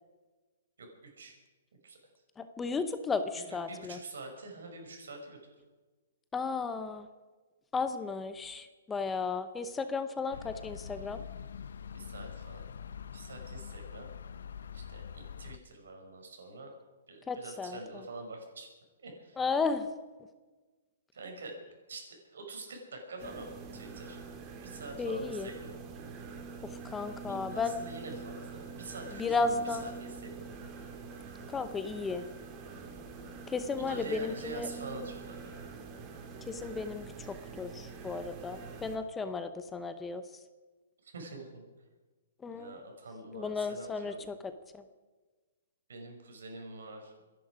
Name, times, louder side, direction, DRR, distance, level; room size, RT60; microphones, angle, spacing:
voice 1, 2.4-4.0 6.3-7.1 7.7-11.2 17.3-17.8 19.4-19.9 25.0-25.5 26.6-27.8 29.1-29.9 31.5-32.3 33.5-34.7 36.5-40.2 42.4-42.8 43.3-44.8, left 4 dB, 10° left, 10 dB, 0.8 m, -34 dB
voice 2, 3.4-5.4 11.9-12.7 13.1-14.1 14.7-16.7 17.1-18.7 19.0-19.4 21.1-21.6 21.9-24.2 24.6-25.8 27.3-30.5 33.8-35.7 41.0-41.6 42.5-44.2 45.9-47.1, right 2 dB, 85° right, 2 dB, 5.7 m, -45 dB
sound 1, 10.3-15.6, left 7 dB, 80° left, 0.8 m, -44 dB
sound 2, 23.2-39.0, right 4 dB, 25° right, 2.0 m, -45 dB
26.5 x 11.0 x 5.0 m, 1.3 s
hypercardioid pair, 160°, 0 cm